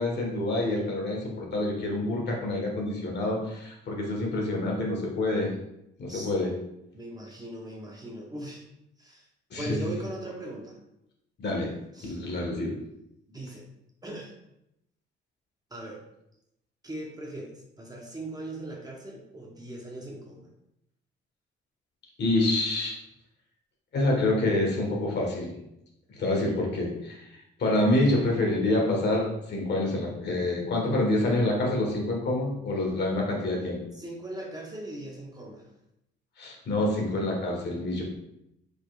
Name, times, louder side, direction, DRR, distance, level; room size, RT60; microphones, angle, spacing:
voice 1, 0.0-5.5 6.0-6.5 9.5-9.8 11.4-11.7 12.0-12.7 22.2-22.9 23.9-25.5 26.1-27.2 27.6-33.8 36.4-38.0, left 2 dB, 60° left, -1 dB, 1.6 m, -27 dB
voice 2, 6.9-8.6 9.0-9.3 9.6-10.8 11.9-12.2 13.3-13.6 14.0-14.3 15.7-16.0 16.8-17.5 17.8-20.5 33.9-35.7, right 1 dB, 20° right, -1 dB, 1.1 m, -39 dB
5.1 x 4.2 x 2.5 m, 0.83 s
cardioid pair, 90°, 20 cm